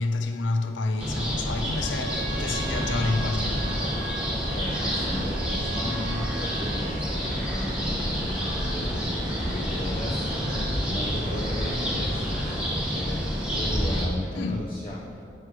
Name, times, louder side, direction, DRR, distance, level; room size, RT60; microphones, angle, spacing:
voice 1, 0.0-4.0 14.3-14.7, left 2 dB, 85° left, 0.5 m, -29 dB
sound 1, 1.0-14.1, equal, 5° right, 0.8 m, -28 dB
Trumpet, 1.7-7.2, right 3 dB, 65° right, 0.7 m, -40 dB
sound 2, 3.4-12.5, equal, 45° right, 1.2 m, -38 dB
voice 2, 4.5-13.3 13.6-15.2, left 1 dB, 30° left, 0.4 m, -36 dB
4.7 x 4.6 x 5.9 m
head